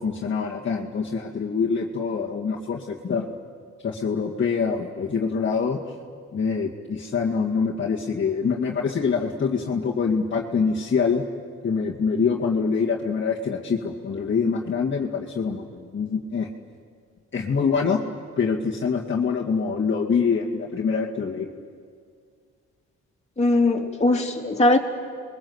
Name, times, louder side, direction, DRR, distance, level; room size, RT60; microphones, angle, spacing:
voice 1, 0.0-3.3 3.8-5.8 6.3-11.2 11.6-16.5 17.3-18.0 18.4-21.5, left 5 dB, 40° left, -3 dB, 2.1 m, -25 dB
voice 2, 23.4-24.8, left 2 dB, 20° left, 0 dB, 3.3 m, -20 dB
29.5 x 22.0 x 8.0 m, 2.1 s
cardioid pair, 90°, 30 cm